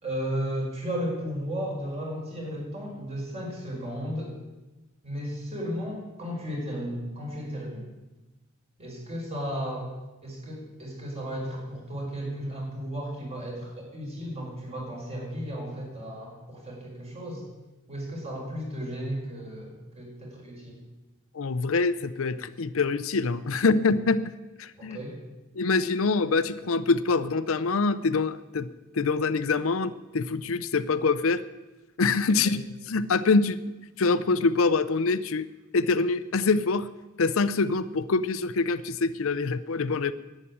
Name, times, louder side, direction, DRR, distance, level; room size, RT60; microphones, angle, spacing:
voice 1, 0.0-4.4 5.0-7.9 8.8-9.9 10.2-17.4 17.9-20.8 24.8-25.2 32.4-32.6, equal, 30° right, -2 dB, 5.0 m, -34 dB
voice 2, 21.3-24.2 24.6-25.0 25.6-28.7 28.9-31.4 32.0-32.6 32.9-33.6 34.0-35.5 35.7-36.9 37.2-40.1, left 4 dB, 70° left, 14 dB, 0.6 m, -25 dB
11.0 x 9.0 x 9.9 m, 1.1 s
head